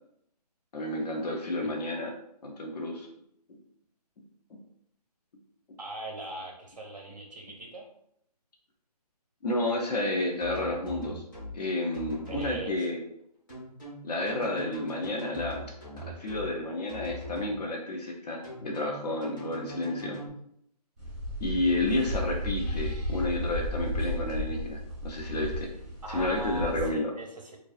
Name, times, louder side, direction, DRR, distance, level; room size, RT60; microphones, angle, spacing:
voice 1, 0.7-2.1 2.4-3.1 4.5-4.6 9.4-11.2 11.5-13.0 14.0-15.6 16.0-20.2 21.4-25.7 26.1-27.1, left 2 dB, 70° left, 1 dB, 0.6 m, -31 dB
voice 2, 5.8-7.9 12.3-12.9 26.0-27.6, right 1 dB, 75° right, 1 dB, 0.6 m, -40 dB
sound 1, 10.4-11.5 11.9-12.6 13.5-16.5 16.9-17.5 18.4-20.3, equal, 30° left, 0.8 m, -42 dB
sound 2, 21.0-26.9, equal, ahead, 0.5 m, -34 dB
2.3 x 2.3 x 2.3 m, 0.74 s
hypercardioid pair, 170°, 21 cm